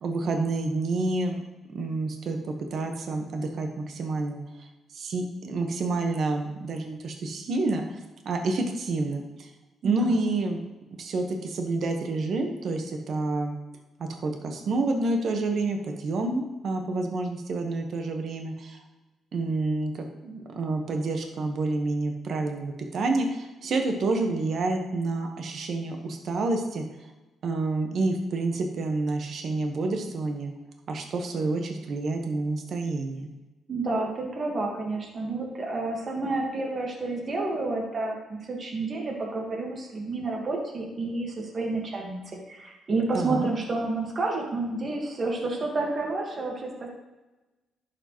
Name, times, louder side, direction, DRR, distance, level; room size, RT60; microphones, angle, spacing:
voice 1, 0.0-1.4 1.7-4.4 4.9-8.0 8.2-9.5 9.8-10.6 11.0-13.5 14.0-18.8 19.3-26.8 27.4-30.5 30.9-33.3 43.1-43.5, right 2 dB, 60° right, 4 dB, 1.2 m, -28 dB
voice 2, 9.8-10.2 33.7-42.2 42.5-46.9, right 3 dB, 40° right, 0 dB, 1.6 m, -30 dB
11.5 x 5.0 x 3.1 m, 1.1 s
cardioid pair, 90°, 0 cm